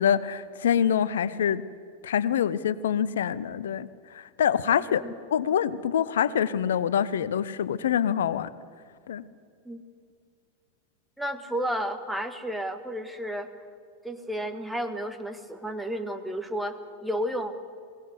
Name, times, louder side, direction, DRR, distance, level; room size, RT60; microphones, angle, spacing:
voice 1, 0.0-1.6 2.0-3.9 4.1-5.0 5.3-8.5 9.1-9.2, left 9 dB, 60° left, 18 dB, 0.8 m, -25 dB
voice 2, 11.2-13.5 14.0-17.6, equal, ahead, 8 dB, 1.5 m, -32 dB
22.0 x 18.5 x 8.0 m, 2.2 s
figure-of-eight pair, 90°, 0 cm